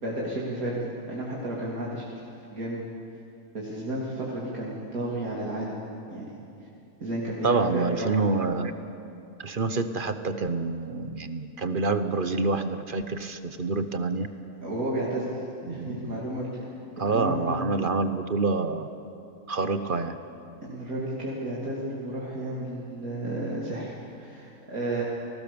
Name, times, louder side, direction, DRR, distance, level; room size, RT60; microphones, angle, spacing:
voice 1, 0.0-2.0 2.5-2.8 3.5-5.7 6.1-6.4 7.0-8.2 14.6-16.7 17.0-17.6 20.6-25.0, right 1 dB, 75° right, -6 dB, 3.4 m, -32 dB
voice 2, 7.4-8.7 9.4-14.3 15.7-16.2 17.0-18.9 19.5-20.2, right 3 dB, 40° right, 10 dB, 1.0 m, -27 dB
29.0 x 19.0 x 7.0 m, 2.7 s
omnidirectional pair, 1.5 m